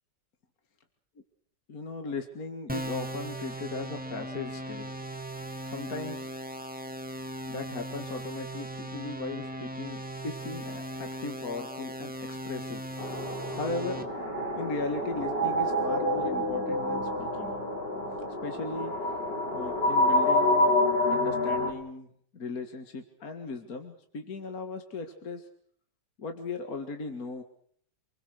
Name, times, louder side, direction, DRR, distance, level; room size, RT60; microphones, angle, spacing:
voice 1, 1.7-4.9 5.6-6.3 7.5-12.8 13.5-14.0 14.6-17.5 18.4-18.9 19.5-20.8 21.1-22.1 22.3-25.5 26.2-27.4, left 3 dB, 55° left, 5 dB, 2.4 m, -37 dB
sound 1, 2.7-14.0, right 1 dB, 5° right, 2.0 m, -38 dB
sound 2, 13.0-21.7, left 1 dB, 80° left, 6.2 m, -27 dB
29.5 x 21.0 x 6.6 m, 0.63 s
omnidirectional pair, 1.8 m